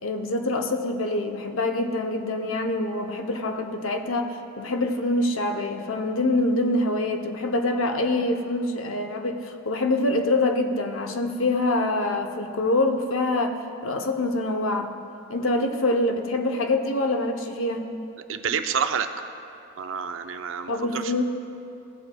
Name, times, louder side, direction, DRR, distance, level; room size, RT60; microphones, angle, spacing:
voice 1, 0.0-14.9 15.3-18.0 20.7-21.2, left 2 dB, 80° left, 5 dB, 0.7 m, -25 dB
voice 2, 18.3-19.1 19.8-21.1, right 7 dB, 70° right, 8 dB, 0.5 m, -28 dB
16.5 x 7.9 x 2.3 m, 2.6 s
head